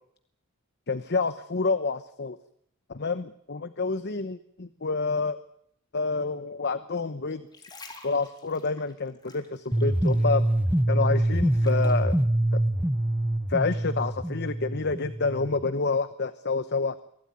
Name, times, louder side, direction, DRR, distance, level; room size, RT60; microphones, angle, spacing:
voice 1, 0.9-2.4 2.9-5.4 5.9-7.4 8.0-10.4 10.9-12.2 12.5-12.6 13.5-17.0, left 4 dB, 55° left, 12 dB, 1.0 m, -28 dB
sound 1, 7.3-10.4 10.7-12.1 12.7-12.8, left 3 dB, 20° left, 3.8 m, -48 dB
sound 2, 9.7-15.7, right 1 dB, 10° right, 0.9 m, -25 dB
24.0 x 16.5 x 9.5 m, 0.69 s
head